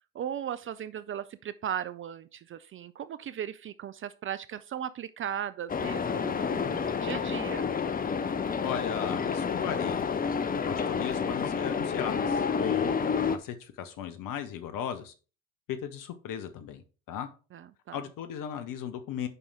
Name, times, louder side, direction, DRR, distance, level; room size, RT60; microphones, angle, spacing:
voice 1, 0.1-7.7 17.5-18.0, right 9 dB, 30° right, 0.4 m, -37 dB
sound 1, 5.7-13.4, left 6 dB, 20° left, 0.7 m, -29 dB
voice 2, 8.6-10.1 10.7-12.9 13.3-15.1 15.7-17.3 17.9-19.3, left 9 dB, 50° left, 1.1 m, -36 dB
8.2 x 5.4 x 3.5 m
figure-of-eight pair, 60°, 42 cm